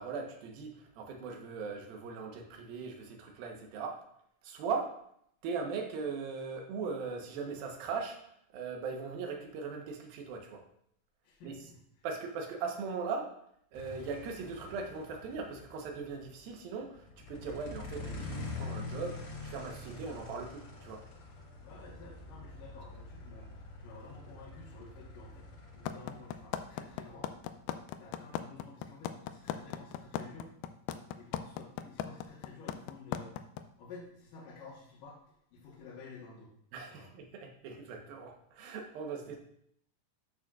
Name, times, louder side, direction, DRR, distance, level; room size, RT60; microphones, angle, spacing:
voice 1, 0.0-4.0 4.4-4.9 5.4-8.2 8.5-10.6 11.4-11.6 12.0-13.3 13.7-21.0 36.7-39.4, right 5 dB, 75° right, 2 dB, 2.9 m, -39 dB
voice 2, 11.2-11.8 21.6-25.5 25.7-27.3 28.0-30.5 31.2-33.4 33.8-35.2 35.5-36.5 36.9-37.1, left 4 dB, 65° left, -6 dB, 2.8 m, -51 dB
sound 1, 13.7-28.3, left 3 dB, 50° left, 1.9 m, -46 dB
sound 2, 25.9-33.6, left 11 dB, 85° left, 2.4 m, -36 dB
12.5 x 6.3 x 2.4 m, 0.71 s
omnidirectional pair, 4.3 m